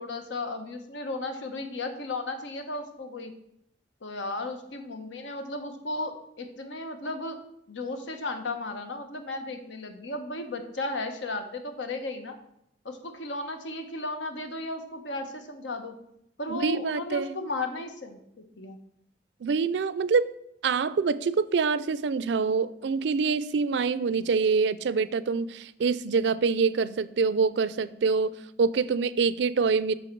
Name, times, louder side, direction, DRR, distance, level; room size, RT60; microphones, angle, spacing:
voice 1, 0.0-3.3 4.0-7.4 7.7-12.4 12.8-16.0 16.4-18.8, left 2 dB, 90° left, 7 dB, 1.1 m, -35 dB
voice 2, 16.5-17.4 19.4-20.3 20.6-29.9, right 5 dB, 70° right, 17 dB, 0.4 m, -25 dB
7.7 x 6.4 x 4.6 m, 0.76 s
head